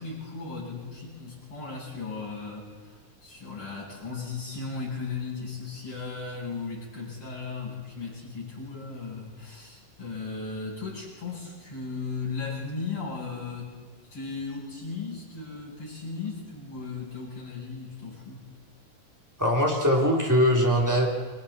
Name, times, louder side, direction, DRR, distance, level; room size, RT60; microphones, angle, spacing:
voice 1, 0.0-13.8 14.1-18.5, left 4 dB, 40° left, -6 dB, 9.0 m, -36 dB
voice 2, 19.4-21.1, equal, 5° right, -1 dB, 2.5 m, -21 dB
30.0 x 24.0 x 4.3 m, 1.4 s
omnidirectional pair, 3.7 m